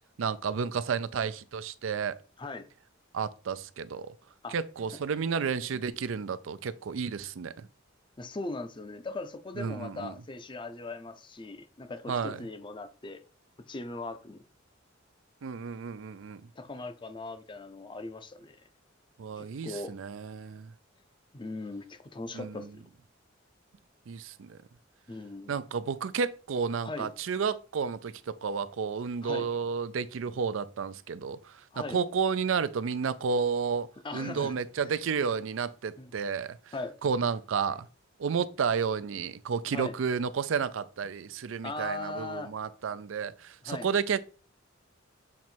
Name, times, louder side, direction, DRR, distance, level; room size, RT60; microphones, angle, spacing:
voice 1, 0.2-2.2 3.1-4.2 4.5-7.7 9.6-10.1 12.1-12.4 15.4-16.4 19.2-20.7 22.3-22.7 24.1-24.6 25.5-33.9 34.1-36.7 37.0-37.9 38.2-44.2, right 6 dB, 80° right, 0.4 m, -31 dB
voice 2, 8.2-13.2 13.7-14.4 16.6-18.6 19.4-20.0 21.3-22.8 25.1-25.6 26.8-27.1 29.2-29.5 31.7-32.0 34.0-34.5 36.0-36.1 36.7-37.0 39.7-39.9 41.6-42.5 43.6-43.9, left 2 dB, 25° left, 0.5 m, -39 dB
7.2 x 3.1 x 4.4 m
head